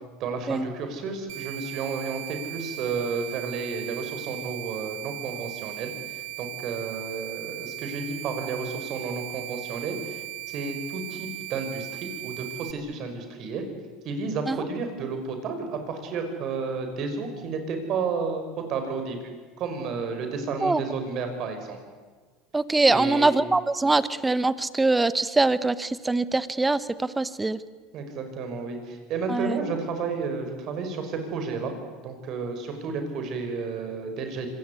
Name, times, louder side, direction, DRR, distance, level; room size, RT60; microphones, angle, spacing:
voice 1, 0.2-13.6 14.0-19.2 19.6-21.8 22.9-23.4 27.9-31.7 32.0-34.5, right 4 dB, 50° right, 6 dB, 5.8 m, -32 dB
sound 1, 1.3-12.7, right 19 dB, 80° right, 1.3 m, -38 dB
voice 2, 22.5-27.6 29.3-29.6, right 2 dB, 10° right, 16 dB, 1.0 m, -23 dB
25.0 x 18.5 x 9.8 m, 1.4 s
supercardioid pair, 110°, 0 cm